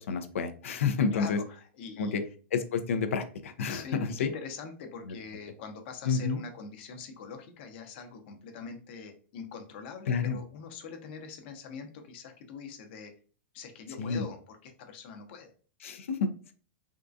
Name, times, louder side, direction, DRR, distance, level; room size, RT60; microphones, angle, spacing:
voice 1, 0.0-1.4 2.0-2.2 2.5-4.3 6.0-6.4 10.1-10.4 14.0-14.3 15.8-16.5, left 5 dB, 80° left, 9 dB, 0.5 m, -29 dB
voice 2, 1.1-2.2 3.7-13.1 13.5-15.5, left 5 dB, 55° left, 5 dB, 0.8 m, -43 dB
3.7 x 2.4 x 2.6 m, 0.39 s
hypercardioid pair, 145°, 7 cm